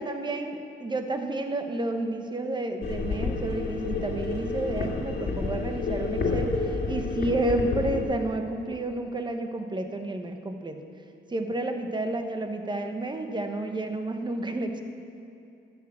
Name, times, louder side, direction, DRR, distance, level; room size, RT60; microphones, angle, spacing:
voice 1, 0.0-10.8 11.3-14.8, right 2 dB, 20° right, 5 dB, 1.1 m, -30 dB
sound 1, 2.8-8.0, left 3 dB, 55° left, 2.0 m, -30 dB
12.5 x 6.2 x 7.5 m, 2.7 s
cardioid pair, 90°, 20 cm